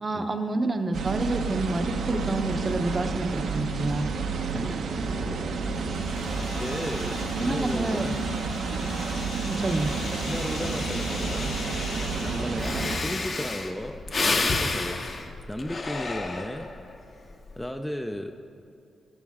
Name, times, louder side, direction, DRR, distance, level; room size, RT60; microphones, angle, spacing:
voice 1, 0.0-4.1 7.3-8.1 9.4-9.9, right 2 dB, 30° right, 7 dB, 0.7 m, -28 dB
sound 1, 0.9-13.0, right 4 dB, 75° right, 0.8 m, -30 dB
voice 2, 4.5-4.9 5.2-5.5 6.5-8.2 10.3-11.6 12.2-15.0 15.5-16.7 17.6-18.4, left 1 dB, 10° left, 5 dB, 0.4 m, -35 dB
sound 2, 5.3-12.9, left 4 dB, 80° left, 1.2 m, -40 dB
Breathing, 12.2-12.3 12.6-16.8 17.3-17.7, left 3 dB, 40° left, 0.8 m, -29 dB
12.5 x 11.0 x 3.6 m, 2.5 s
cardioid pair, 120°, 0 cm